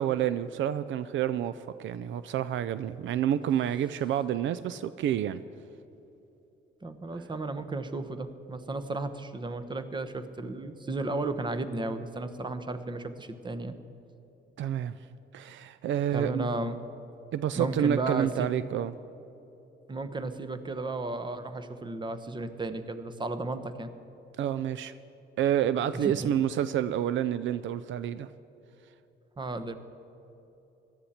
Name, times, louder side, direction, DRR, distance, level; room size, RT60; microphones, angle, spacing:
voice 1, 0.0-5.4 14.6-15.0 15.3-16.5 17.3-18.9 24.4-24.9 25.4-28.3, right 10 dB, 70° right, 14 dB, 0.4 m, -29 dB
voice 2, 6.8-13.7 16.1-16.8 17.5-18.5 19.9-23.9 25.9-26.3 29.4-29.7, right 2 dB, 25° right, 10 dB, 0.9 m, -34 dB
17.5 x 13.0 x 4.3 m, 2.9 s
cardioid pair, 90°, 20 cm